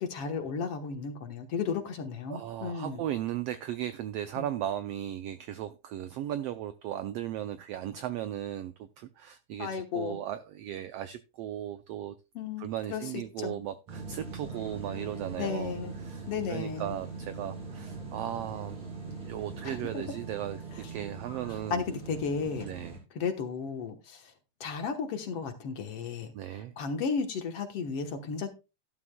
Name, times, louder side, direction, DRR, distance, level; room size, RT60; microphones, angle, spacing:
voice 1, 0.0-3.0 4.4-4.5 9.6-10.2 12.4-13.0 13.4-13.6 15.4-16.0 16.3-17.0 19.6-20.0 21.7-22.7 23.2-24.3 24.6-28.5, left 5 dB, 60° left, 1.9 m, -34 dB
voice 2, 2.3-12.1 12.6-15.7 16.0-18.8 19.2-20.6 20.9-21.8 22.6-23.0 26.3-26.7, right 11 dB, 85° right, 1.4 m, -36 dB
sound 1, 13.9-23.0, right 4 dB, 65° right, 6.4 m, -41 dB
12.0 x 11.5 x 2.2 m
omnidirectional pair, 3.5 m